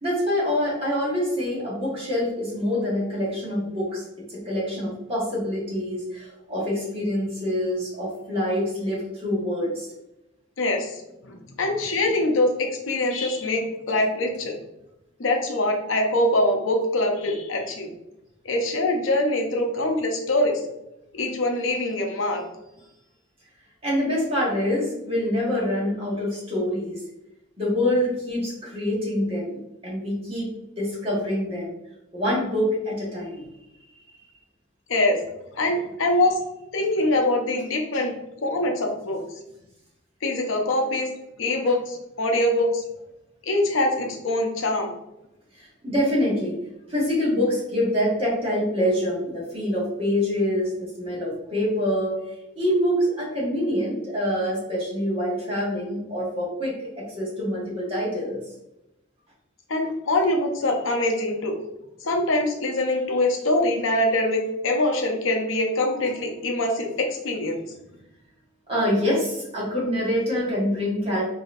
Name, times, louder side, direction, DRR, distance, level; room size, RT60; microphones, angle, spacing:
voice 1, 0.0-4.0 4.3-9.9 23.8-27.0 27.6-30.5 30.8-31.7 32.1-33.4 45.5-46.6 46.9-52.1 52.5-58.4 66.0-66.1 68.7-71.2, left 1 dB, 30° right, -6 dB, 1.4 m, -25 dB
voice 2, 10.6-14.5 15.2-17.9 18.4-20.6 21.1-22.4 34.9-35.2 35.5-36.4 36.7-38.1 38.4-39.2 40.2-41.1 41.4-42.8 43.4-44.9 59.7-61.5 62.0-67.6, left 1 dB, 75° left, 3 dB, 0.7 m, -23 dB
4.0 x 2.8 x 2.5 m, 0.89 s
head